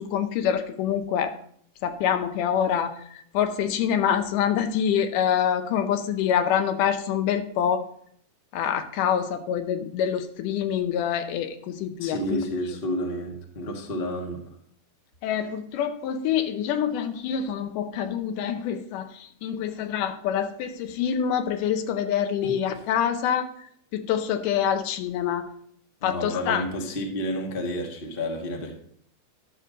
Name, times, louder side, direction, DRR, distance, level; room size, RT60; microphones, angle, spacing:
voice 1, 0.0-1.3 1.8-2.9 3.3-7.8 8.5-12.4 15.2-19.1 19.4-23.5 23.9-25.5 26.0-26.6, left 8 dB, 85° left, 8 dB, 2.4 m, -26 dB
voice 2, 12.0-14.4 22.4-22.8 26.0-28.8, equal, 65° left, 1 dB, 0.5 m, -30 dB
11.0 x 6.5 x 3.7 m, 0.64 s
omnidirectional pair, 3.6 m